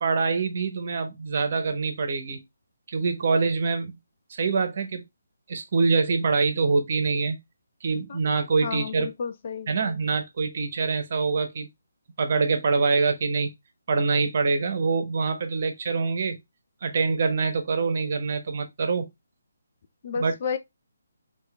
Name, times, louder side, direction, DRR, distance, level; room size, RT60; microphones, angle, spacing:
voice 1, 0.0-2.4 2.9-4.0 4.3-5.0 5.5-7.4 7.8-9.1 9.7-11.7 12.2-13.5 13.9-16.4 16.8-19.1 20.2-20.3, right 4 dB, 45° right, 0.8 m, -25 dB
voice 2, 8.6-9.7 20.0-20.6, left 6 dB, 40° left, 0.5 m, -31 dB
4.7 x 2.4 x 3.0 m
figure-of-eight pair, 145°, 0 cm